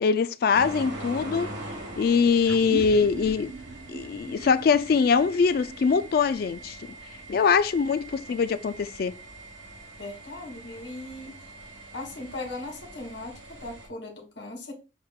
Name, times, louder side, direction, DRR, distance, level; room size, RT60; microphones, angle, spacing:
voice 1, 0.0-1.5 2.0-3.5 3.9-6.8 7.3-9.1, left 5 dB, 55° left, 0.3 m, -23 dB
sound 1, 0.5-13.9, right 1 dB, 80° right, 1.7 m, -43 dB
sound 2, 2.4-7.3, right 3 dB, 65° right, 0.5 m, -40 dB
voice 2, 10.0-11.4 11.9-14.7, left 2 dB, 80° left, 1.5 m, -38 dB
6.4 x 2.3 x 3.6 m
head